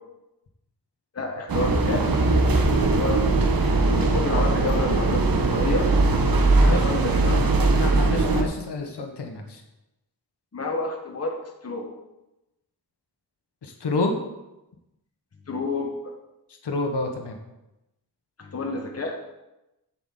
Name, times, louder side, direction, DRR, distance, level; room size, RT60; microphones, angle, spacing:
voice 1, 1.1-2.1 2.9-3.2 3.9-5.9 6.7-7.4 10.5-11.3 11.6-11.9 15.5-16.1 18.4-19.2, left 3 dB, 40° left, 1 dB, 1.5 m, -29 dB
sound 1, 1.5-8.4, right 3 dB, 60° right, 1.3 m, -20 dB
voice 2, 6.5-6.9 7.8-9.6 13.6-14.2 16.6-17.4, left 3 dB, 85° left, 3 dB, 1.6 m, -28 dB
7.7 x 6.0 x 7.5 m, 0.95 s
wide cardioid pair, 140°, 40 cm